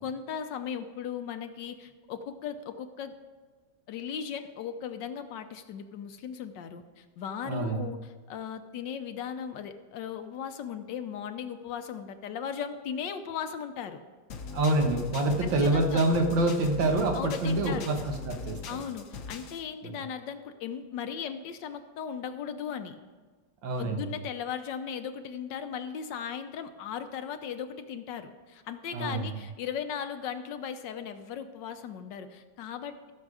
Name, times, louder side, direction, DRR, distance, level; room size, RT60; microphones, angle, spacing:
voice 1, 0.0-3.2 3.9-14.0 15.6-16.0 17.1-17.9 18.7-23.0 23.8-33.1, left 7 dB, 70° left, 8 dB, 1.4 m, -37 dB
voice 2, 7.5-7.9 14.5-18.6 19.8-19.9 23.6-24.0 28.9-29.3, right 2 dB, 75° right, 3 dB, 2.0 m, -26 dB
sound 1, 14.3-19.6, left 4 dB, 55° left, 1.0 m, -40 dB
15.0 x 6.8 x 4.8 m, 1.4 s
omnidirectional pair, 2.1 m